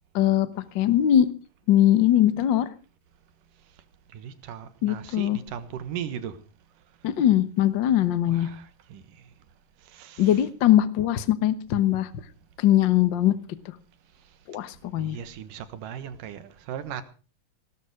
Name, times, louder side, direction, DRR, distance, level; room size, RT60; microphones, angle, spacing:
voice 1, 0.1-1.3 1.7-2.7 4.8-5.4 7.0-8.5 10.2-12.1 12.6-13.4 13.6-13.7 14.5-15.2, left 12 dB, 85° left, 1.0 m, -21 dB
voice 2, 4.1-6.4 8.3-9.0 9.9-10.4 15.0-17.0, right 9 dB, 75° right, 2.9 m, -37 dB
18.0 x 13.0 x 4.9 m
omnidirectional pair, 3.9 m